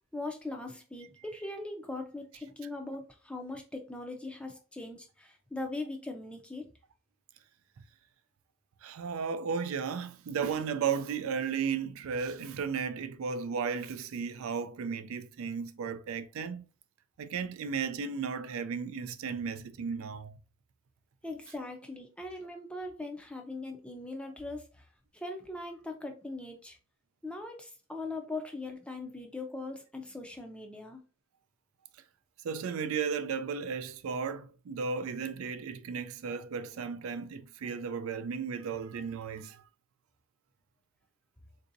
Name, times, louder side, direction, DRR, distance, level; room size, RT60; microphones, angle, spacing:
voice 1, 0.1-6.7 21.2-24.6 25.1-26.8 27.2-31.0, left 2 dB, 5° left, 0.4 m, -40 dB
voice 2, 8.8-16.6 17.2-20.3 32.4-39.6, right 6 dB, 90° right, 0.4 m, -34 dB
3.8 x 2.7 x 2.5 m
head